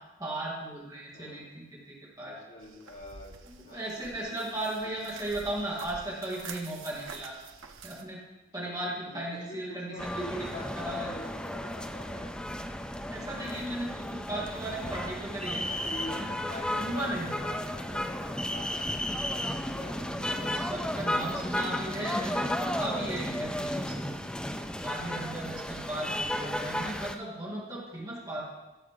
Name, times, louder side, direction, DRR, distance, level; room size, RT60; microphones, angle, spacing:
voice 1, 0.2-2.4 3.5-7.4 7.8-8.2 8.5-11.1 13.1-15.7 16.8-17.4 20.0-24.1 24.8-28.4, right 1 dB, 20° right, -5 dB, 2.5 m, -36 dB
voice 2, 2.2-3.4 3.6-4.4 8.6-8.8 9.1-10.7 10.9-12.3 14.7-15.0 15.7-20.0 20.4-21.5, left 1 dB, 55° left, -7 dB, 3.5 m, -45 dB
sound 1, 2.6-8.0, right 5 dB, 80° right, 1.0 m, -47 dB
sound 2, 10.0-27.1, left 1 dB, 5° left, 0.4 m, -34 dB
16.0 x 7.0 x 3.8 m, 1.1 s
head